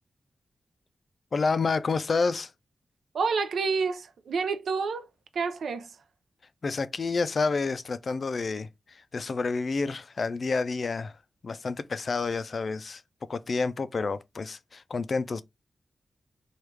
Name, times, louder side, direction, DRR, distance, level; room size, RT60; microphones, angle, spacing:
voice 1, 1.3-2.5 6.6-11.2 11.4-13.0 13.3-15.4, left 4 dB, 55° left, 0.3 m, -29 dB
voice 2, 3.1-5.1 5.3-6.0, right 5 dB, 90° right, 0.4 m, -29 dB
3.2 x 2.3 x 3.2 m
wide cardioid pair, 90°, 0 cm